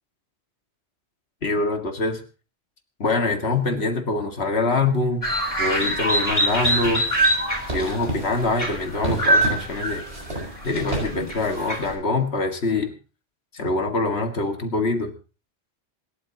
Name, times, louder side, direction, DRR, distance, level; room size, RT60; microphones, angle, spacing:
voice 1, 1.4-2.2 3.0-5.3 5.6-7.0 7.7-10.0 10.6-12.9 13.5-15.1, left 3 dB, 75° left, 5 dB, 2.3 m, -24 dB
sound 1, 5.2-11.9, right 1 dB, 30° left, 3.8 m, -24 dB
sound 2, 6.6-11.9, right 1 dB, 75° right, 6.5 m, -33 dB
27.0 x 12.5 x 2.9 m, 0.34 s
omnidirectional pair, 1.1 m